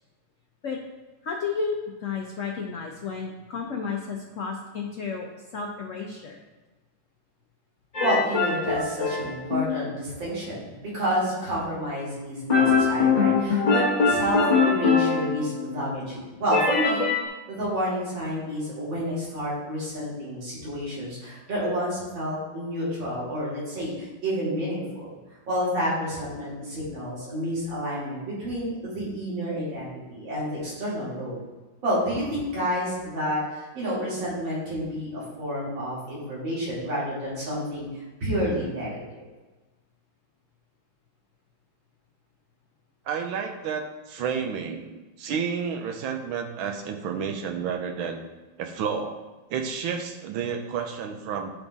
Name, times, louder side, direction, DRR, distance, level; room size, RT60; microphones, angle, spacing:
voice 1, 1.2-6.4, left 5 dB, 75° left, 0 dB, 0.7 m, -32 dB
sound 1, 7.9-9.8 12.5-15.8 16.5-17.3, left 5 dB, 30° left, 0.7 m, -23 dB
voice 2, 8.0-17.0 17.5-25.1 25.5-31.4 31.8-37.9 38.2-39.2, equal, 70° right, -8 dB, 3.1 m, -29 dB
voice 3, 43.1-48.2 48.6-49.2 49.5-51.5, right 6 dB, 85° right, 4 dB, 1.5 m, -31 dB
9.7 x 4.0 x 3.5 m, 1.2 s
omnidirectional pair, 2.2 m